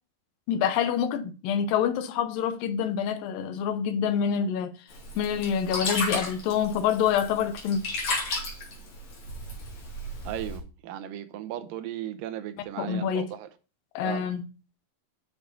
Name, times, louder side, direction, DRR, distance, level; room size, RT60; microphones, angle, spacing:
voice 1, 0.5-4.7 5.2-7.8 12.8-13.3 14.0-14.4, left 8 dB, 85° left, 2.6 m, -26 dB
Sink (filling or washing), 4.9-10.6, left 2 dB, 55° left, 3.7 m, -34 dB
voice 2, 10.3-13.5 14.0-14.3, right 12 dB, 80° right, 2.4 m, -36 dB
8.0 x 6.1 x 3.9 m
omnidirectional pair, 3.9 m